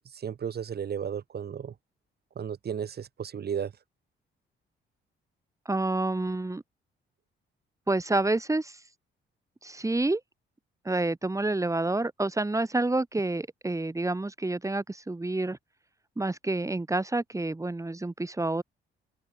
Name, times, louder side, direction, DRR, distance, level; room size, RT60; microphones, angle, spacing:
voice 1, 0.2-1.7 2.4-3.7, right 8 dB, 55° right, 5.2 m, -34 dB
voice 2, 5.7-6.6 7.9-8.8 9.6-10.2 10.9-15.6 16.2-18.6, right 2 dB, 15° right, 5.2 m, -28 dB
cardioid pair, 90°, 20 cm